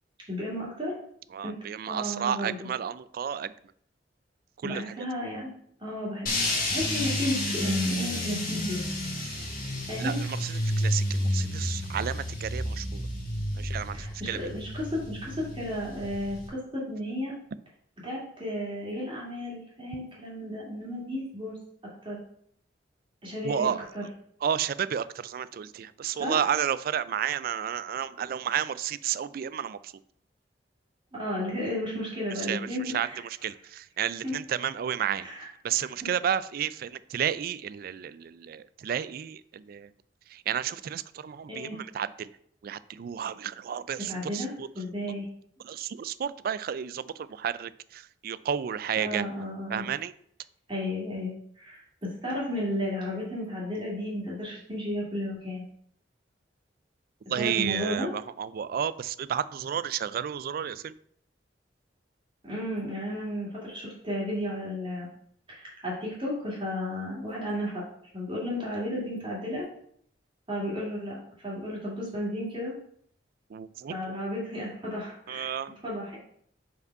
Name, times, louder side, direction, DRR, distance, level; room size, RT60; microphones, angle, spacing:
voice 1, 0.3-0.9 1.4-1.5 1.9-2.5 4.6-5.5 5.8-8.8 9.9-10.2 13.9-17.3 18.0-21.5 22.0-22.2 23.2-24.0 26.2-26.3 31.1-33.2 34.2-34.3 35.2-35.4 41.5-41.8 44.1-44.5 44.8-45.3 49.0-49.8 50.7-55.6 57.4-58.1 62.4-65.1 65.5-67.8 68.1-69.6 70.5-72.7 73.9-75.5 75.8-76.2, left 1 dB, 30° right, -6 dB, 2.3 m, -33 dB
voice 2, 1.3-3.5 4.6-5.1 10.0-13.0 13.5-14.4 23.4-23.9 24.4-30.0 32.4-39.9 40.3-42.3 42.6-44.8 45.6-49.3 49.7-50.1 57.3-61.0 73.5-74.1 75.3-75.8, right 8 dB, 55° right, 16 dB, 0.3 m, -32 dB
sound 1, 6.3-16.5, left 1 dB, 55° left, 2.0 m, -30 dB
5.3 x 4.9 x 4.6 m, 0.65 s
head